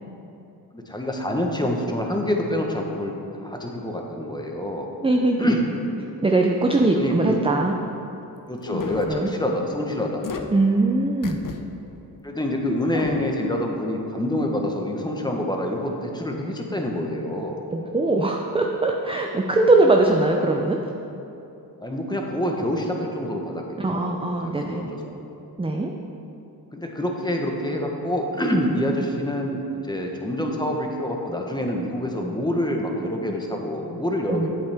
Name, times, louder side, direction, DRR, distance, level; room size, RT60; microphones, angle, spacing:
voice 1, 0.7-3.1 3.4-4.9 5.4-5.7 6.9-7.4 8.5-10.2 12.2-17.6 21.8-23.6 23.9-25.2 26.7-34.5, left 1 dB, 10° left, 1 dB, 1.1 m, -26 dB
voice 2, 5.0-5.5 6.2-7.8 9.1-9.3 10.5-11.4 17.7-20.8 23.8-24.8 25.6-25.9 34.3-34.5, right 2 dB, 15° right, 1 dB, 0.5 m, -21 dB
sound 1, 8.6-9.1 10.2-10.4 11.2-11.6 12.0-12.1 12.8-13.4, left 5 dB, 55° left, 0.7 m, -32 dB
8.4 x 8.1 x 3.5 m, 2.9 s
cardioid pair, 65°, 40 cm